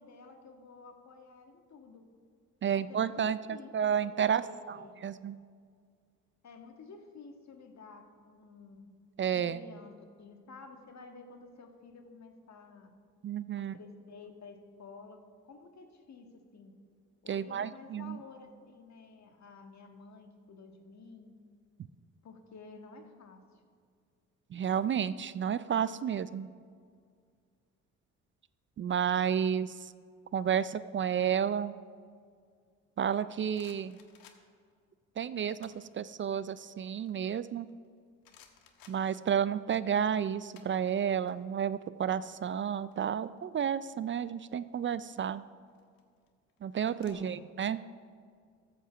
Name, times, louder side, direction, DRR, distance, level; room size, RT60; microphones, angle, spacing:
voice 1, 0.0-2.1 2.7-5.0 6.4-8.9 9.3-9.9 10.2-12.9 13.5-16.7 17.2-21.3 22.2-23.4 47.0-47.5, left 4 dB, 50° left, 5 dB, 1.6 m, -51 dB
voice 2, 2.6-3.4 3.7-4.4 4.7-5.4 9.2-9.6 13.2-13.8 17.3-18.2 24.5-26.5 28.8-29.9 30.3-31.7 33.0-34.0 35.2-37.7 38.9-45.4 46.6-47.8, right 8 dB, 35° right, 16 dB, 0.4 m, -31 dB
sound 1, 33.1-34.7 35.4-35.9 36.3-37.9 38.2-39.6 39.9-41.3 41.6-41.8 42.1-43.6 44.6-45.0 45.7-47.1, left 7 dB, 70° left, 1.3 m, -60 dB
13.5 x 5.6 x 6.9 m, 2.1 s
hypercardioid pair, 55°, 36 cm